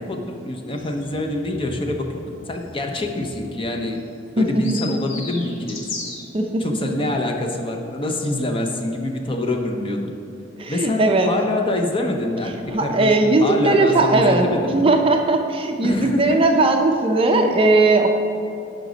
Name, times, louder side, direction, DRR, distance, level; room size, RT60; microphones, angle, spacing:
voice 1, 0.0-4.0 4.4-5.8 6.6-10.1 10.7-12.5 12.8-13.1 13.4-14.9 15.8-16.4, left 1 dB, 25° left, 3 dB, 0.6 m, -25 dB
sound 1, 0.7-6.3, left 3 dB, 80° left, 1.3 m, -37 dB
voice 2, 6.3-6.6 10.6-11.3 12.7-18.1, right 2 dB, 30° right, 4 dB, 0.5 m, -18 dB
11.0 x 5.1 x 3.9 m, 2.6 s
head